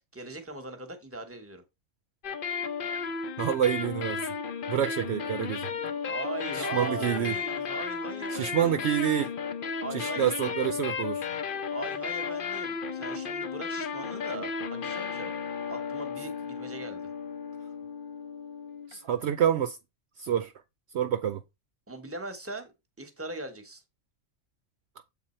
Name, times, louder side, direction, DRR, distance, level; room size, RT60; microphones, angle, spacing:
voice 1, 0.0-1.6 6.1-8.9 9.8-10.3 11.7-15.3 15.7-17.1 21.9-23.8, right 2 dB, 10° right, 1.1 m, -40 dB
sound 1, 2.2-19.1, left 5 dB, 50° left, 0.8 m, -34 dB
voice 2, 3.4-4.3 4.7-5.7 6.5-7.3 8.3-9.3 9.9-11.3 18.9-19.8 20.2-20.5 20.9-21.4, right 9 dB, 65° right, 0.8 m, -27 dB
7.5 x 3.8 x 4.3 m
omnidirectional pair, 1.3 m